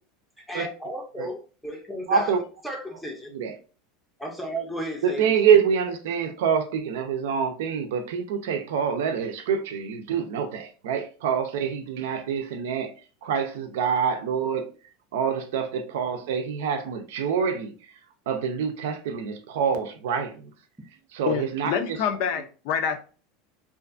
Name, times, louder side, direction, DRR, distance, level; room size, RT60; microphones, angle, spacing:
voice 1, 0.5-2.3 2.6-3.3 4.2-5.3, equal, ahead, 0.5 m, -34 dB
voice 2, 2.1-2.4 3.3-3.5 5.0-12.9 13.2-14.7 15.1-17.9 18.3-20.5 21.1-22.0, right 7 dB, 85° right, 0.5 m, -26 dB
voice 3, 21.3-23.0, left 7 dB, 60° left, 0.4 m, -27 dB
2.5 x 2.4 x 2.4 m
supercardioid pair, 145°, 0 cm